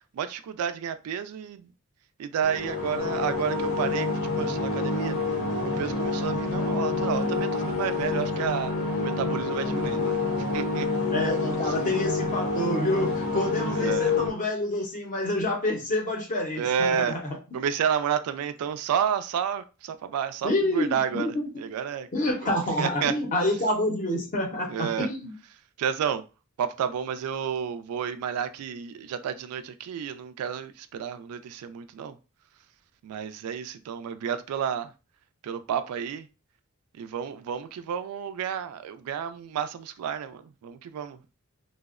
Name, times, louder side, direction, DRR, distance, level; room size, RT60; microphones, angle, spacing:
voice 1, 0.1-1.6 2.2-5.1 5.6-8.7 9.0-10.2 10.5-10.9 13.8-14.1 16.6-17.1 17.5-21.3 21.6-22.1 22.8-23.1 24.7-25.1 25.8-26.2 26.6-32.1 33.0-34.9 35.4-36.3 37.0-41.2, right 8 dB, 85° right, 12 dB, 0.3 m, -30 dB
sound 1, 2.4-14.3, left 3 dB, 75° left, 0.6 m, -28 dB
voice 2, 11.1-17.4 20.4-21.6 22.1-25.3, left 1 dB, 35° left, 1 dB, 0.6 m, -28 dB
2.6 x 2.0 x 2.4 m, 0.31 s
head